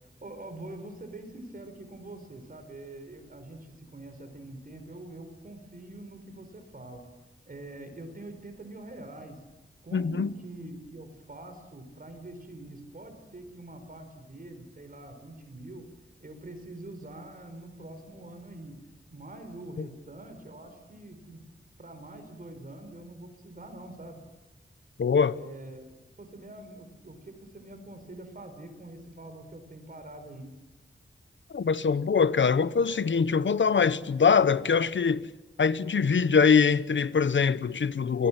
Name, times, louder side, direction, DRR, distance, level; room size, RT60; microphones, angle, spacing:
voice 1, 0.2-7.0 7.5-9.4 9.8-15.9 16.2-18.8 19.1-21.4 21.8-24.2 25.3-25.9 26.2-30.5, right 1 dB, 50° right, 4.5 m, -44 dB
voice 2, 9.9-10.3 19.8-19.9 25.0-25.4 31.5-35.3 35.6-38.3, left 5 dB, 80° left, 0.9 m, -23 dB
30.0 x 20.0 x 7.6 m
wide cardioid pair, 90°, 19 cm